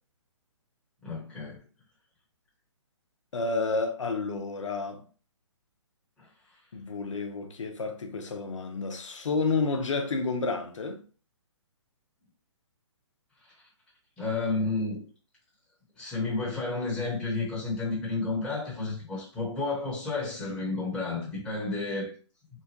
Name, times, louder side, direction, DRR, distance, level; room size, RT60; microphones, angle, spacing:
voice 1, 1.0-1.6 6.2-6.3 14.2-15.0 16.0-22.1, left 3 dB, 5° left, 1.0 m, -31 dB
voice 2, 3.3-5.0 6.7-11.0, left 3 dB, 80° left, 0.7 m, -30 dB
3.0 x 2.2 x 2.8 m
hypercardioid pair, 145°, 16 cm